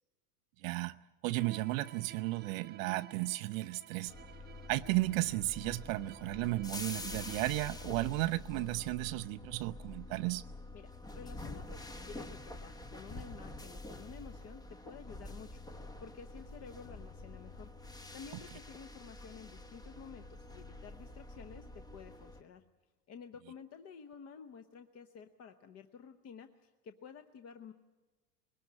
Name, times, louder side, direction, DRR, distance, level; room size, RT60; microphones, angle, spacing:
voice 1, 0.6-0.9 1.2-4.1 4.7-10.4, right 19 dB, 60° right, 10 dB, 0.6 m, -34 dB
Bowed string instrument, 1.3-8.0, right 11 dB, 20° right, 0.9 m, -55 dB
sound 1, 4.1-22.4, left 2 dB, 10° left, 0.8 m, -47 dB
voice 2, 10.7-17.7 18.1-22.6 23.1-27.7, left 6 dB, 35° left, 8 dB, 0.9 m, -52 dB
21.0 x 19.0 x 8.5 m, 1.3 s
supercardioid pair, 120°, 46 cm